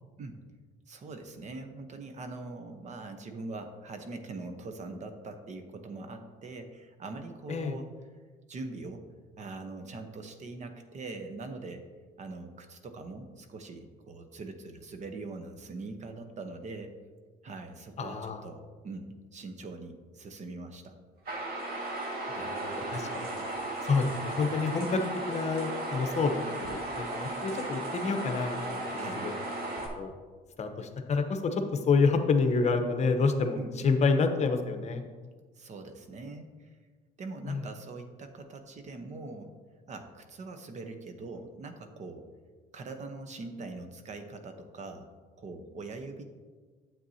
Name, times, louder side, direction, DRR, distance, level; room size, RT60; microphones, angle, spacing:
voice 1, 0.9-7.9 8.5-9.1 9.4-11.9 12.2-16.9 17.4-21.0 28.9-29.3 33.6-34.0 35.6-36.7 37.2-39.5 39.9-42.3 42.7-45.1 45.4-46.2, right 3 dB, 45° right, 7 dB, 0.9 m, -42 dB
voice 2, 18.0-18.4 22.3-23.4 23.8-29.3 29.9-30.1 30.6-33.6 33.8-35.0 37.4-37.6, left 4 dB, 40° left, 6 dB, 0.9 m, -28 dB
sound 1, 21.3-29.9, right 2 dB, 65° right, 1.9 m, -35 dB
9.3 x 7.7 x 2.8 m, 1.5 s
cardioid pair, 110°, 17 cm